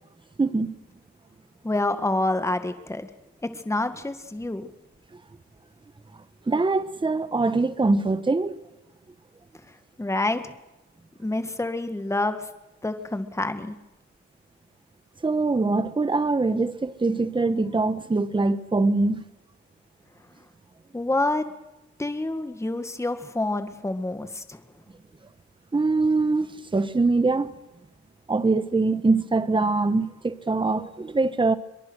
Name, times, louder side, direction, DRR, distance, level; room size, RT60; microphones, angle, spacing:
voice 1, 0.4-0.7 6.5-8.6 15.2-19.2 25.7-27.5 28.3-31.6, right 3 dB, 15° right, 1.3 m, -23 dB
voice 2, 1.6-3.1 3.6-4.7 10.0-10.5 11.2-12.5 12.8-13.8 20.9-21.5 22.0-24.6, left 2 dB, 10° left, 1.9 m, -27 dB
23.5 x 22.0 x 6.4 m
cardioid pair, 90°, 30 cm